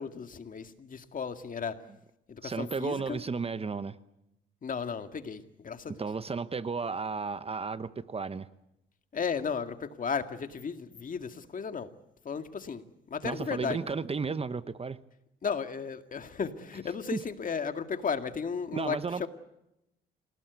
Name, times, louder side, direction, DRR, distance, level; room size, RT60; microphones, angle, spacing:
voice 1, 0.0-1.8 2.3-3.2 4.6-6.0 9.1-11.9 12.2-14.0 15.4-19.3, left 6 dB, 45° left, 8 dB, 2.1 m, -35 dB
voice 2, 2.4-3.9 6.0-8.5 13.2-15.0 17.1-17.2 18.7-19.3, right 4 dB, 30° right, 14 dB, 1.0 m, -33 dB
28.0 x 18.5 x 8.2 m, 0.87 s
cardioid pair, 90°, 20 cm